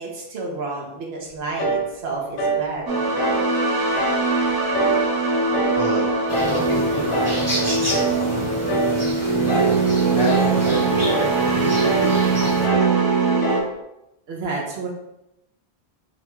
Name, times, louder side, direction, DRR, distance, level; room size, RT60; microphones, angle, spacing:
voice 1, 0.0-2.8 14.3-14.9, right 3 dB, 80° right, -1 dB, 1.0 m, -30 dB
sound 1, 1.6-1.9 2.4-2.7 3.2-3.5 3.9-4.2 4.7-5.1 5.5-5.8 6.3-6.6 7.1-7.4 7.9-8.2 8.7-9.0 9.5-9.8 10.3-10.6 11.0-11.3 11.8-12.1 12.6-12.9 13.4-13.7, right 2 dB, 75° left, 0.9 m, -24 dB
sound 2, 2.9-13.6, right 3 dB, 40° right, 0.3 m, -21 dB
sound 3, 6.3-12.7, right 1 dB, 15° right, 0.8 m, -30 dB
voice 2, 6.5-8.8 9.4-9.7 10.1-11.7 12.0-12.4 12.7-12.9, equal, 40° left, -4 dB, 0.6 m, -30 dB
3.8 x 2.2 x 3.0 m, 0.86 s
omnidirectional pair, 1.0 m